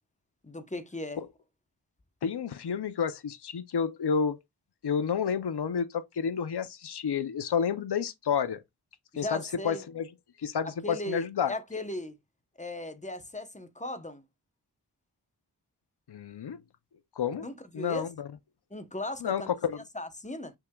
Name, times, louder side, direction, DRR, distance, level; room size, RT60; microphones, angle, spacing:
voice 1, 0.4-1.2 9.1-9.8 10.8-12.2 12.6-14.2 17.4-18.1 18.7-19.5 19.9-20.5, left 1 dB, 20° left, 0.7 m, -37 dB
voice 2, 2.2-4.4 4.8-8.6 9.2-10.1 10.4-11.5 16.1-16.6 17.2-17.5 17.7-18.1 19.2-19.8, left 7 dB, 75° left, 0.6 m, -30 dB
5.8 x 3.7 x 2.2 m
wide cardioid pair, 45°, 40 cm